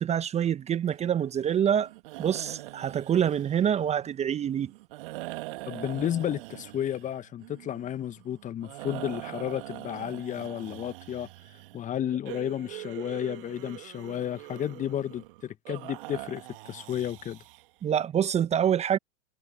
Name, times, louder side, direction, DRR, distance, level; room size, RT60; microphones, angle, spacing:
voice 1, 0.0-1.9 2.2-4.7 17.8-19.0, right 9 dB, 15° right, 1.3 m, -26 dB
sound 1, 0.9-17.9, right 21 dB, 45° right, 2.3 m, -43 dB
voice 2, 5.7-11.3 11.7-17.4, left 10 dB, 20° left, 1.4 m, -32 dB
figure-of-eight pair, 105°, 37 cm